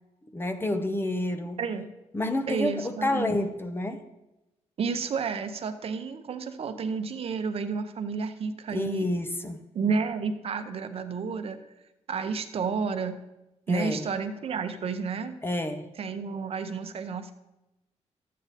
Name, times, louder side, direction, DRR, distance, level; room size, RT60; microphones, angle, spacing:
voice 1, 0.3-1.6 2.1-4.0 8.7-9.6 13.7-14.1 15.4-15.9, left 1 dB, 20° left, 8 dB, 0.7 m, -29 dB
voice 2, 2.5-3.3 4.8-9.1 9.7-11.6 12.1-13.2 13.7-15.3 16.0-17.3, right 5 dB, 55° right, 8 dB, 0.8 m, -31 dB
12.0 x 8.4 x 4.1 m, 0.97 s
cardioid pair, 125°, 12 cm